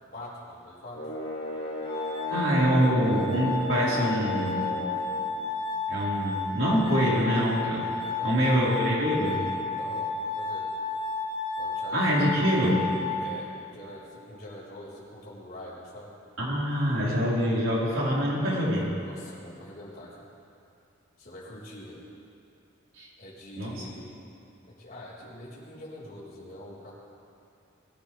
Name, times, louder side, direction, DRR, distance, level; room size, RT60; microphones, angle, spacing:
voice 1, 0.1-1.0 8.1-8.7 9.7-10.7 11.6-12.5 13.2-16.1 19.0-20.3 21.2-22.0 23.2-24.3 24.7-26.9, left 1 dB, 45° left, -7 dB, 4.3 m, -44 dB
sound 1, 0.9-5.2, left 1 dB, 70° left, 3.5 m, -35 dB
Glass, 1.8-13.8, left 4 dB, 25° left, 3.0 m, -32 dB
voice 2, 2.3-4.6 5.9-7.8 8.2-9.4 11.9-12.8 16.4-18.9 22.9-23.1 23.6-23.9, equal, 80° right, -6 dB, 4.4 m, -25 dB
22.5 x 15.0 x 3.4 m, 2.5 s
head